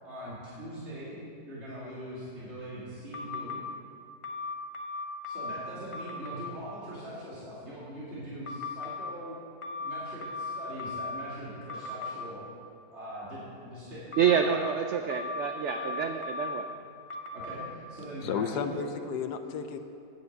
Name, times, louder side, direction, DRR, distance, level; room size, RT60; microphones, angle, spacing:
voice 1, 0.0-1.2 1.4-3.6 5.2-9.4 9.8-12.4 12.9-14.6 14.9-15.1 15.7-15.9 16.7-16.8 17.3-18.8, right 1 dB, 45° right, -10 dB, 2.9 m, -42 dB
sound 1, 3.1-3.6 4.2-5.6 5.9-6.4 8.5-9.0 9.6-11.2 11.7-12.1 14.1-14.6 15.1-16.6 17.1-17.6, left 3 dB, 30° left, 0.6 m, -37 dB
voice 2, 14.2-16.7, right 7 dB, 70° right, 6 dB, 0.7 m, -27 dB
voice 3, 18.2-19.8, left 7 dB, 80° left, 8 dB, 1.3 m, -32 dB
9.7 x 8.4 x 7.9 m, 2.6 s
omnidirectional pair, 1.7 m